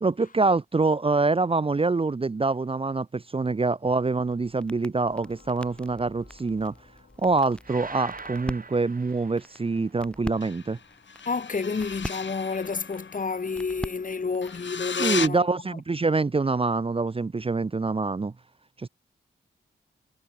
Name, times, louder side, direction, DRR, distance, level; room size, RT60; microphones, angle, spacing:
voice 1, 0.0-6.7 7.2-10.8 15.0-18.3 18.8-18.9, right 3 dB, 25° right, 0.6 m, -25 dB
sound 1, 3.8-14.7, equal, 5° left, 3.0 m, -43 dB
sound 2, 5.0-8.0 10.3-15.3, left 6 dB, 65° left, 2.6 m, -38 dB
sound 3, 7.6-9.9, right 4 dB, 45° right, 3.2 m, -42 dB
voice 2, 11.2-15.5 15.7-15.8, left 4 dB, 40° left, 1.1 m, -30 dB
cardioid pair, 40°, 20 cm